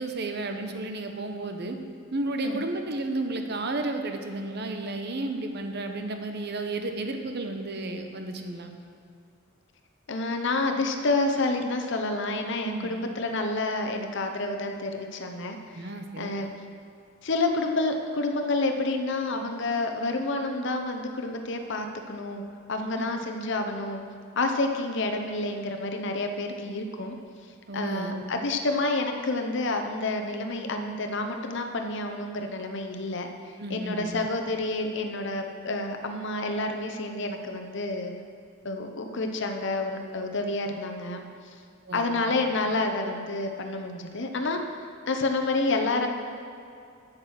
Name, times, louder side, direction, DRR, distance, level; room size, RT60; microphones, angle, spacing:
voice 1, 0.0-1.8 2.1-8.7 12.6-12.9 15.7-16.3 22.9-23.1 27.7-28.3 33.6-34.3 41.9-42.3, right 2 dB, 55° right, 5 dB, 0.9 m, -32 dB
voice 2, 10.1-15.9 16.2-16.5 17.2-22.4 22.7-24.0 24.4-27.1 27.7-38.1 38.6-41.2 41.9-44.6 45.1-46.1, left 2 dB, 65° left, 4 dB, 0.8 m, -29 dB
8.6 x 7.6 x 6.4 m, 2.4 s
head